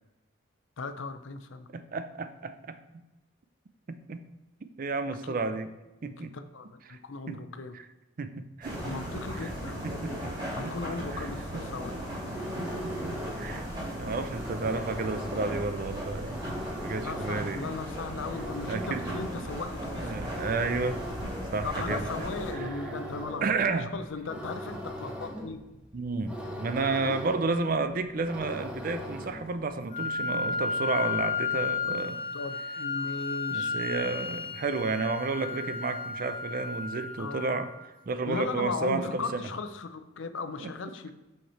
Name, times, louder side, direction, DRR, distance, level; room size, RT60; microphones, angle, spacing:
voice 1, 0.8-1.7 5.2-5.3 6.2-7.8 8.8-10.2 10.5-12.0 17.0-20.1 21.6-25.6 27.1-27.2 32.3-33.8 37.2-37.7 38.3-41.1, left 4 dB, 70° left, 10 dB, 0.6 m, -37 dB
voice 2, 1.7-3.0 3.9-4.2 4.8-5.7 6.0-6.3 6.9-7.0 7.3-7.5 7.7-7.8 8.2-9.4 9.8-11.7 12.3-12.4 12.8-13.7 13.9-16.5 16.8-17.8 18.7-19.0 20.0-21.0 21.5-22.8 23.4-23.9 25.9-32.2 33.5-37.7 38.1-39.4 40.6-40.7, right 3 dB, 45° right, 11 dB, 0.4 m, -32 dB
sound 1, 8.6-22.5, equal, 25° right, 2.6 m, -37 dB
sound 2, 12.3-29.6, equal, 5° right, 1.0 m, -40 dB
Wind instrument woodwind instrument, 29.9-37.9, left 5 dB, 25° left, 1.0 m, -33 dB
5.9 x 5.5 x 4.3 m, 1.0 s
head